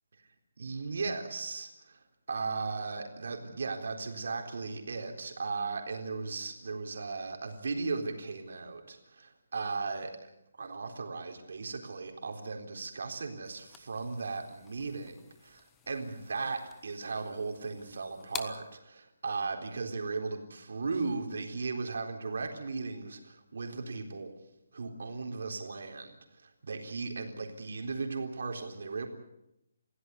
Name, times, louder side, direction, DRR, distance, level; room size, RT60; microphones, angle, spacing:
voice 1, 0.6-10.1 10.6-24.3 24.7-29.1, right 4 dB, 65° right, 4 dB, 4.0 m, -37 dB
sound 1, 13.4-18.8, left 9 dB, 10° left, 0.9 m, -49 dB
23.5 x 16.0 x 9.4 m, 0.84 s
hypercardioid pair, 175°, 0 cm